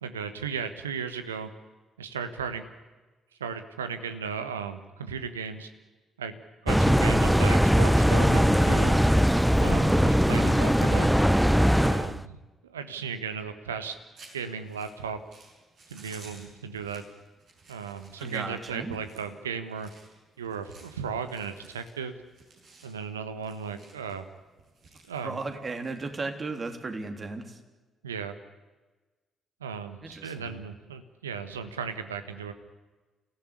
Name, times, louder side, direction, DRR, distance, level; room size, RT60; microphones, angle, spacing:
voice 1, 0.0-1.5 2.0-2.6 3.4-5.7 6.2-6.4 6.6-9.0 9.6-11.2 11.8-14.0 14.3-15.2 15.9-17.0 17.7-19.9 20.4-22.1 22.8-24.3 25.1-25.4 28.0-28.4 29.6-32.5, right 6 dB, 80° right, 10 dB, 1.3 m, -35 dB
sound 1, 6.7-12.2, equal, ahead, 0.7 m, -21 dB
sound 2, 14.2-26.5, right 3 dB, 55° right, 6.5 m, -55 dB
voice 2, 18.2-19.0 25.2-27.6 30.0-30.6, right 3 dB, 35° right, 6 dB, 3.2 m, -35 dB
28.5 x 16.0 x 9.7 m, 1.2 s
figure-of-eight pair, 40°, 0 cm